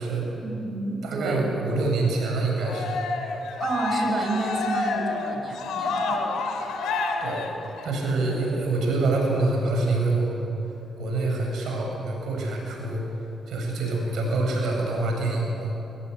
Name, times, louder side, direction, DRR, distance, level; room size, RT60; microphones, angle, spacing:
voice 1, 0.4-1.4 3.6-6.4, right 2 dB, 50° right, 2 dB, 7.0 m, -30 dB
voice 2, 1.0-3.0 7.2-7.5 7.8-10.4 11.0-13.2 13.5-15.7, right 2 dB, 75° right, 0 dB, 7.9 m, -26 dB
Cheering, 2.6-8.1, left 3 dB, 85° left, 2.6 m, -29 dB
23.0 x 20.0 x 9.9 m, 2.9 s
supercardioid pair, 60°, 0 cm